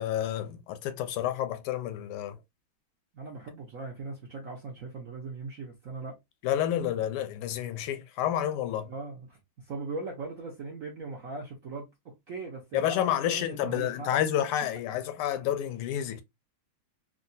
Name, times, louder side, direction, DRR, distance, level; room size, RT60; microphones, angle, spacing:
voice 1, 0.0-2.4 6.4-8.9 12.7-16.2, left 11 dB, 85° left, 1.5 m, -29 dB
voice 2, 3.1-6.2 8.9-14.1, right 3 dB, 65° right, 0.8 m, -39 dB
3.7 x 2.3 x 2.6 m
omnidirectional pair, 2.4 m